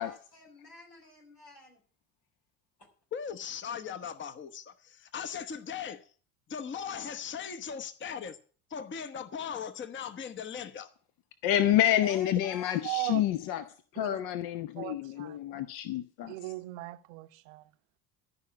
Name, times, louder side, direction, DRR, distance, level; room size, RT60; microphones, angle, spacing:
voice 1, 0.0-1.8 2.8-2.9 10.0-10.1 12.0-12.8, left 2 dB, 85° left, 4.5 m, -50 dB
voice 2, 3.1-6.1 6.5-8.4 8.7-10.9, left 7 dB, 25° left, 1.0 m, -38 dB
voice 3, 11.4-13.6 13.9-16.3, left 12 dB, 50° left, 1.0 m, -28 dB
voice 4, 12.8-13.2 14.0-14.2 14.8-15.4 16.2-17.6, right 18 dB, 60° right, 0.9 m, -37 dB
14.0 x 5.7 x 8.5 m
figure-of-eight pair, 65°, 45 cm